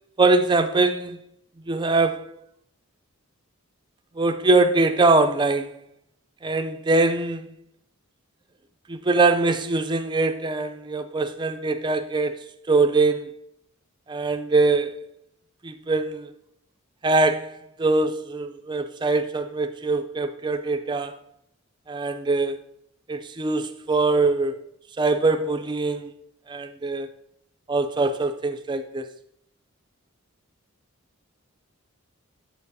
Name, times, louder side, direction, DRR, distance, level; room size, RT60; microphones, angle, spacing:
voice 1, 0.2-1.2 1.7-2.4 4.2-5.8 6.4-7.5 8.9-12.4 12.7-13.3 14.1-14.9 15.6-16.3 17.0-21.2 21.9-22.6 23.1-24.6 25.0-26.1 26.5-27.1 27.7-29.1, right 3 dB, 20° right, 0.4 m, -22 dB
7.6 x 6.7 x 2.7 m
head